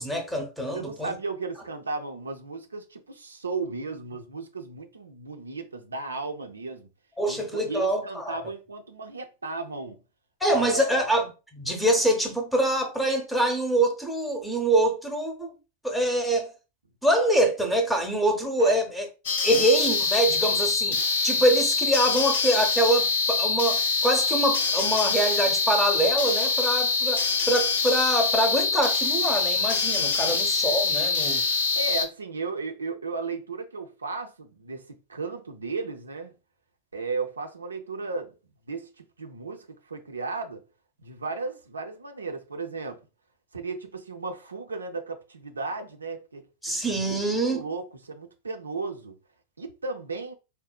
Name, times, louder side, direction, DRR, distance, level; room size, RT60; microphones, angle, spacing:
voice 1, 0.0-1.1 7.2-8.4 10.4-15.5 15.8-16.5 17.0-19.1 19.4-31.4 46.6-47.6, right 1 dB, ahead, 0.7 m, -25 dB
voice 2, 0.7-6.9 7.3-10.0 10.5-11.1 18.6-18.8 19.5-19.6 30.2-30.4 31.8-36.3 36.9-38.3 38.7-40.6 41.0-43.0 43.5-46.8 47.4-49.2 49.6-50.3, right 3 dB, 75° right, 0.4 m, -35 dB
sound 1, 19.3-32.1, left 4 dB, 60° left, 0.5 m, -25 dB
3.8 x 2.1 x 2.2 m
figure-of-eight pair, 90°, 0 cm